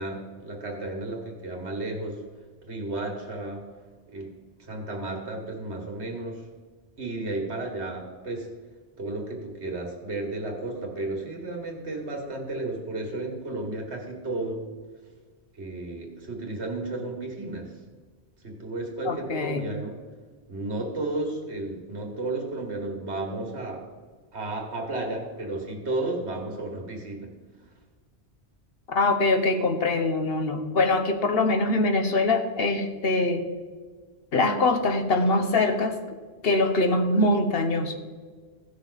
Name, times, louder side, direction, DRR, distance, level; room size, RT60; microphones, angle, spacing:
voice 1, 0.0-2.2 2.6-3.6 4.1-4.3 4.7-6.4 7.0-8.5 9.0-14.6 15.6-17.7 18.4-20.0 20.5-23.9 24.3-27.3, right 2 dB, 75° right, 1 dB, 2.2 m, -33 dB
voice 2, 19.0-19.7 28.9-33.5 34.3-36.0 36.4-38.0, left 2 dB, 60° left, 6 dB, 1.2 m, -23 dB
16.0 x 6.4 x 4.1 m, 1.5 s
omnidirectional pair, 1.1 m